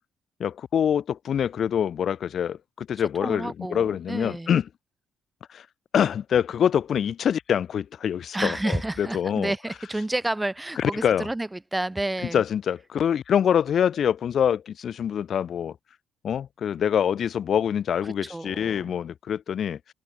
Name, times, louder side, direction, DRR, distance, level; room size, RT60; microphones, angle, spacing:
voice 1, 0.4-1.0 1.3-2.5 3.0-4.6 5.9-9.5 10.8-11.3 12.3-14.6 14.8-15.7 16.2-19.8, left 8 dB, 60° left, 1.4 m, -25 dB
voice 2, 3.2-4.5 8.3-12.4 18.2-19.0, right 2 dB, 10° right, 4.5 m, -30 dB
cardioid pair, 90°, 0 cm